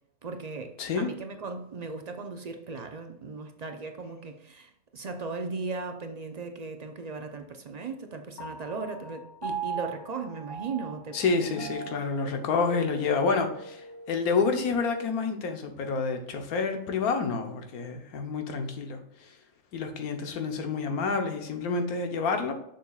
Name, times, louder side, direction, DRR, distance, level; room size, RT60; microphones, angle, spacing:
voice 1, 0.2-12.0, right 4 dB, 55° right, 5 dB, 0.4 m, -37 dB
voice 2, 0.8-1.1 11.1-19.0 19.7-22.5, left 4 dB, 85° left, 5 dB, 1.4 m, -28 dB
Piano, 8.4-15.1, right 4 dB, 20° left, 1.2 m, -40 dB
6.9 x 6.2 x 2.3 m, 0.79 s
omnidirectional pair, 1.5 m